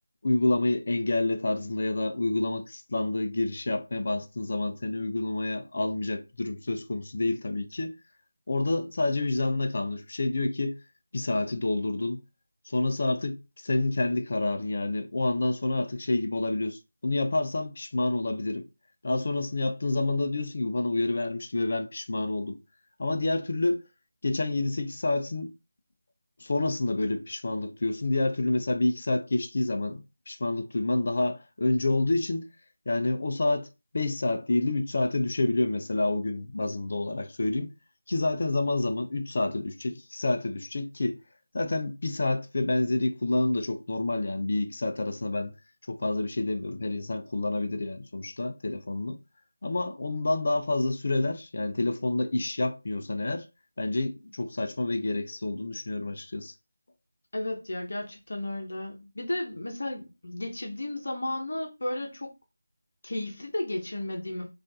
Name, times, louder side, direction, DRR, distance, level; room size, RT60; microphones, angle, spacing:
voice 1, 0.2-8.0 8.5-10.8 11.1-12.2 12.6-18.7 19.0-22.6 23.0-23.8 24.2-25.5 26.4-32.5 32.9-33.7 33.9-37.7 38.1-41.2 41.5-45.5 45.9-49.2 49.6-53.5 53.8-56.5, left 2 dB, 55° left, 0.5 m, -28 dB
voice 2, 57.3-62.3 63.0-64.5, left 1 dB, 70° left, 0.8 m, -33 dB
4.3 x 2.5 x 2.7 m
figure-of-eight pair, 165°, 0 cm